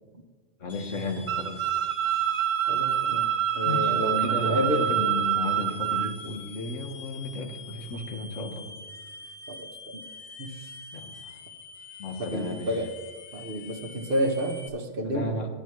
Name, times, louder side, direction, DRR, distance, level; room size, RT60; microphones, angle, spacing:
voice 1, 0.6-1.9 3.6-8.7 10.9-11.3 12.0-12.7 15.0-15.5, left 2 dB, 80° left, 3 dB, 1.6 m, -34 dB
sound 1, 0.7-14.7, left 5 dB, 55° left, 0.9 m, -45 dB
sound 2, 1.3-6.1, right 11 dB, 90° right, 1.0 m, -26 dB
voice 2, 2.7-3.3 3.5-4.9 9.5-9.6 10.4-10.6 12.2-12.9 13.3-15.4, equal, 50° right, 5 dB, 1.0 m, -29 dB
13.0 x 9.6 x 3.1 m, 1.4 s
omnidirectional pair, 1.2 m